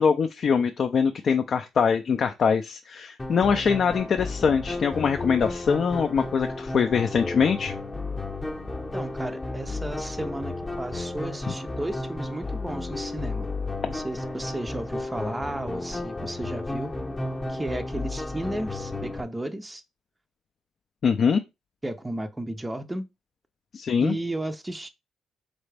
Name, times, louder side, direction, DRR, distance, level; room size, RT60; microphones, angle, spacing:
voice 1, 0.0-7.7 21.0-21.4 23.7-24.1, left 6 dB, 55° left, 0.4 m, -23 dB
sound 1, 3.2-19.2, left 2 dB, 20° left, 0.8 m, -33 dB
voice 2, 8.9-13.5 13.9-16.9 17.5-19.8 21.8-23.1 24.0-24.9, right 1 dB, 15° right, 0.5 m, -34 dB
4.0 x 3.4 x 3.3 m
cardioid pair, 90°, 0 cm